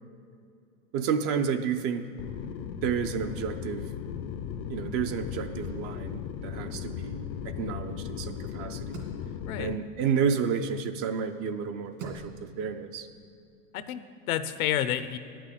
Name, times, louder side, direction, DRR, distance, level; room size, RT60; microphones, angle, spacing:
voice 1, 0.9-2.0 2.8-3.9 4.7-9.0 9.6-13.1, right 6 dB, 35° right, 9 dB, 0.5 m, -31 dB
sound 1, 2.2-9.8, left 8 dB, 40° left, 0.5 m, -37 dB
sound 2, 2.6-3.8 4.1-4.2 4.5-10.9 11.4-12.6, right 3 dB, 65° right, 2.4 m, -48 dB
voice 2, 13.7-15.2, left 11 dB, 75° left, 12 dB, 0.8 m, -30 dB
9.8 x 6.1 x 8.3 m, 2.5 s
supercardioid pair, 125°, 43 cm